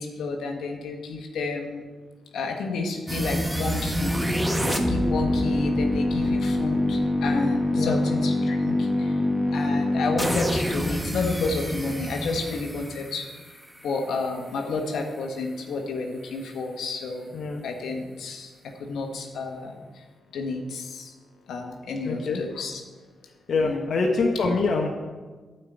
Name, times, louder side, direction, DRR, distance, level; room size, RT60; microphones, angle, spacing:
voice 1, 0.0-1.9 2.3-9.2 9.5-13.2 13.8-17.4 17.6-18.5 18.8-20.0 20.3-21.1 21.5-22.8 23.6-23.9, left 3 dB, 80° left, 3 dB, 1.4 m, -31 dB
sound 1, 3.1-14.0, left 1 dB, 10° right, 1.3 m, -25 dB
voice 2, 22.0-22.4 23.5-24.9, left 3 dB, 65° left, 0 dB, 1.2 m, -25 dB
8.8 x 5.7 x 8.0 m, 1.4 s
supercardioid pair, 55°, 0 cm